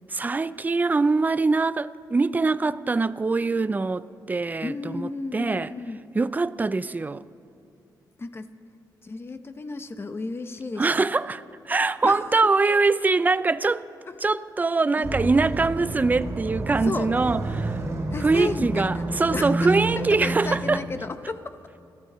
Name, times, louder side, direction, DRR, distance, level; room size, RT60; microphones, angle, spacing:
voice 1, 0.1-5.7 6.2-7.2 10.8-13.9 14.2-17.8 18.2-20.8, right 3 dB, 20° right, 0.4 m, -23 dB
voice 2, 4.6-6.0 8.2-8.5 9.0-11.1 12.0-12.5 14.1-14.2 15.0-15.3 16.8-17.1 18.1-19.0 19.3-21.6, left 3 dB, 30° left, 0.9 m, -33 dB
sound 1, 15.0-20.8, right 2 dB, 40° right, 2.7 m, -29 dB
28.5 x 14.5 x 3.1 m
cardioid pair, 100°, 8 cm